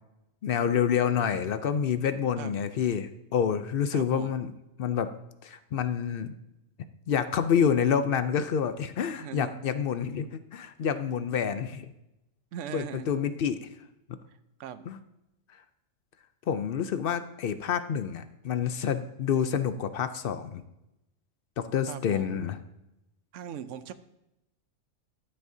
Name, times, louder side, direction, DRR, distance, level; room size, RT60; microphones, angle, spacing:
voice 1, 0.4-4.5 4.8-5.1 5.4-6.3 7.1-11.9 12.7-13.7 14.9-15.0 16.5-20.6 21.6-22.6, left 7 dB, 60° left, 11 dB, 0.6 m, -28 dB
voice 2, 3.9-4.3 9.2-9.6 12.5-13.1 14.6-14.9 18.7-18.9 21.9-22.5 23.3-23.9, right 9 dB, 75° right, 13 dB, 0.9 m, -40 dB
13.0 x 7.7 x 2.7 m, 0.90 s
omnidirectional pair, 1.3 m